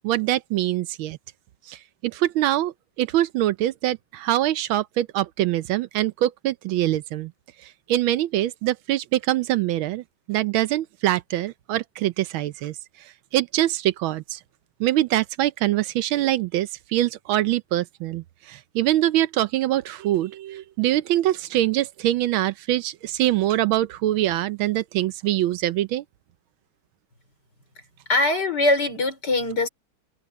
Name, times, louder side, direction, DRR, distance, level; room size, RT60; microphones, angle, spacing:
voice 1, 0.0-1.2 1.7-2.7 3.0-7.3 7.9-12.7 13.3-14.4 14.8-26.0, right 14 dB, 80° right, 1.4 m, -24 dB
voice 2, 28.1-29.7, left 2 dB, 50° left, 4.9 m, -22 dB
omnidirectional pair, 2.3 m